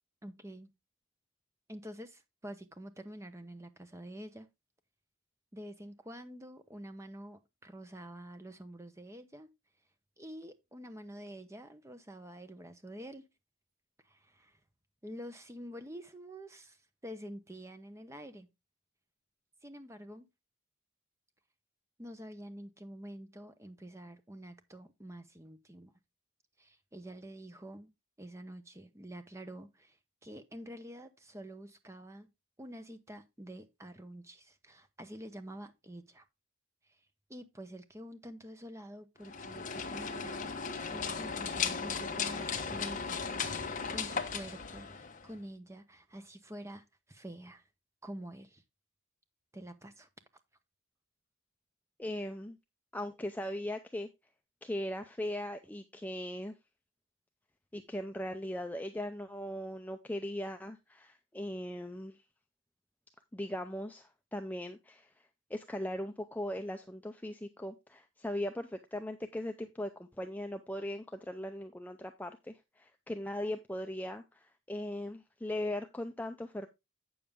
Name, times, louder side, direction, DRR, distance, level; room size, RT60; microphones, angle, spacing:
voice 1, 0.2-0.7 1.7-4.5 5.5-9.5 10.2-13.3 14.0-14.6 15.0-18.5 19.6-20.3 22.0-25.9 26.6-27.9 28.2-30.0 30.2-32.3 32.6-36.2 36.9-37.0 37.3-47.6 48.0-48.6 49.5-50.1, equal, 15° right, 0.9 m, -47 dB
sound 1, 39.2-45.4, left 5 dB, 35° left, 1.0 m, -36 dB
voice 2, 52.0-52.6 52.9-54.1 54.6-56.5 57.7-62.2 63.3-76.7, left 1 dB, 5° left, 0.4 m, -39 dB
8.6 x 7.0 x 3.5 m
head